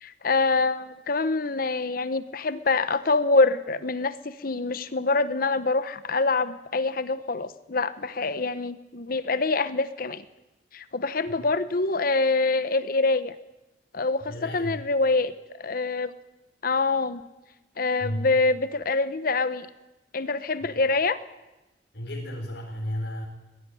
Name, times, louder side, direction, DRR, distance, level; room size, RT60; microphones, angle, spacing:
voice 1, 0.0-10.2 10.7-13.3 13.9-15.3 15.6-16.1 16.6-17.2 17.8-19.7 20.1-21.2, left 3 dB, 55° left, 14 dB, 0.9 m, -25 dB
voice 2, 14.3-14.8 18.0-18.3 21.9-23.3, equal, 75° left, -2 dB, 4.4 m, -33 dB
21.5 x 16.5 x 9.9 m, 1.0 s
head